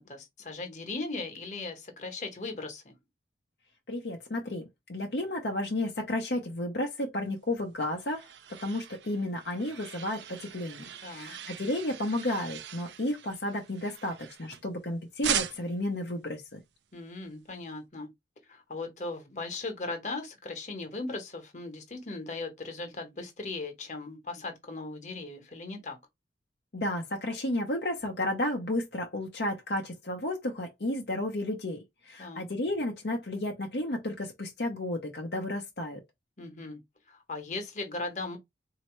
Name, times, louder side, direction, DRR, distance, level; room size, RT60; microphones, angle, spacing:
voice 1, 0.0-2.9 11.0-11.3 16.9-18.1 18.5-26.0 32.2-32.5 36.4-36.8 37.1-38.4, left 3 dB, 40° left, 1.2 m, -38 dB
voice 2, 3.9-8.3 8.6-16.6 26.7-31.8 32.1-36.0, left 1 dB, 65° left, 0.8 m, -32 dB
sound 1, 7.5-14.8 15.2-15.9, right 10 dB, 75° right, 0.5 m, -39 dB
4.3 x 2.8 x 3.1 m
head